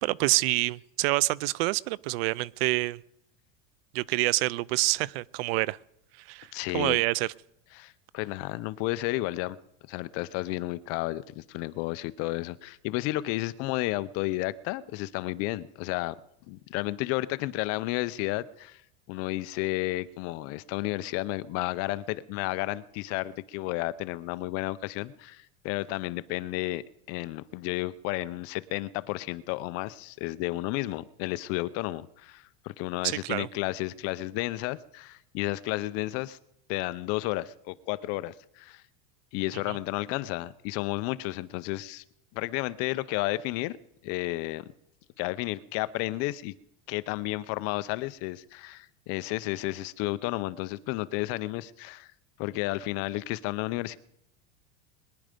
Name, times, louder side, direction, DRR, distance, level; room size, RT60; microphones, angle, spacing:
voice 1, 0.0-3.0 3.9-5.8 6.3-6.5 6.7-7.3 33.0-33.5 39.7-39.8, right 20 dB, 75° right, 0.5 m, -27 dB
voice 2, 6.5-7.0 7.8-9.6 9.9-16.2 16.5-18.8 19.1-26.8 27.1-36.4 36.7-38.8 39.3-42.0 42.3-43.8 44.0-44.6 45.2-46.5 46.9-52.1 52.4-54.0, left 18 dB, 50° left, 0.6 m, -32 dB
22.0 x 10.5 x 5.1 m
supercardioid pair, 145°, 31 cm